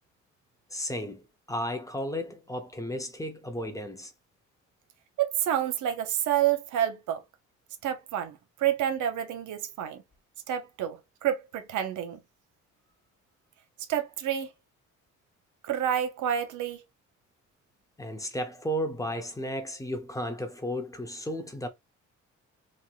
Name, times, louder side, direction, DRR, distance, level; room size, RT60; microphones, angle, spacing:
voice 1, 0.7-4.1 18.0-21.7, equal, 10° left, 0.6 m, -34 dB
voice 2, 5.2-7.2 7.8-10.0 10.5-12.2 13.9-14.5 15.6-16.8, right 10 dB, 80° right, 0.6 m, -29 dB
3.0 x 2.6 x 2.4 m
cardioid pair, 90°, 30 cm